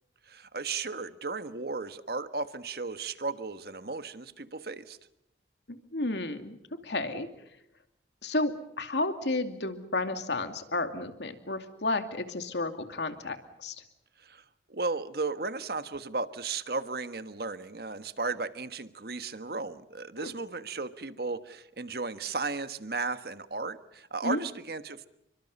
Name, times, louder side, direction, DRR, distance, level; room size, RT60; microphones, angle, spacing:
voice 1, 0.3-5.0 14.2-14.4 14.7-25.1, right 3 dB, 55° right, 11 dB, 1.4 m, -35 dB
voice 2, 5.7-6.6 6.8-7.3 8.2-13.8 20.2-20.3 24.2-24.4, left 2 dB, 75° left, 7 dB, 2.6 m, -32 dB
30.0 x 24.5 x 5.5 m, 0.84 s
head